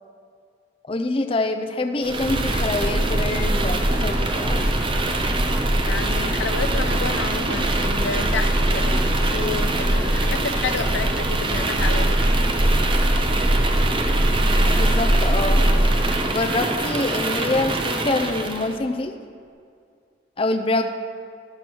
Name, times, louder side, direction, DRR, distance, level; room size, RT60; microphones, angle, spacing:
voice 1, 0.9-4.7 14.7-15.6 16.3-19.1 20.4-20.8, left 2 dB, 30° left, 6 dB, 0.5 m, -25 dB
sound 1, 2.0-18.7, right 1 dB, 25° right, 0.6 m, -21 dB
voice 2, 5.8-12.2, left 5 dB, 80° left, 9 dB, 0.6 m, -30 dB
10.5 x 6.0 x 6.2 m, 2.3 s
head